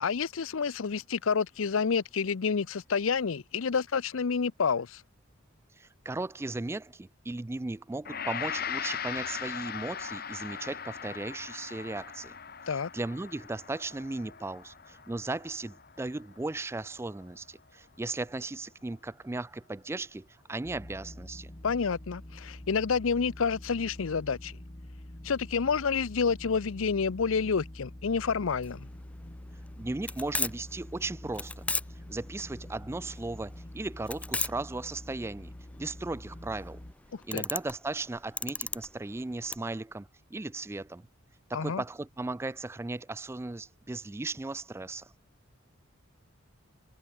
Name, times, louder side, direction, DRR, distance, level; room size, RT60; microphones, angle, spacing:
voice 1, 0.0-5.0 12.7-12.9 21.6-24.6 25.2-28.9 37.1-37.5 41.5-41.8, left 5 dB, 80° left, 0.6 m, -29 dB
voice 2, 5.8-12.4 12.7-21.5 29.8-31.7 32.1-36.8 37.3-41.1 41.5-45.1, right 2 dB, 10° right, 0.3 m, -36 dB
Gong, 8.0-17.2, left 7 dB, 50° left, 2.5 m, -39 dB
sound 1, 20.6-36.9, left 1 dB, 25° left, 1.3 m, -46 dB
sound 2, 28.6-39.6, left 3 dB, 5° left, 0.8 m, -36 dB
head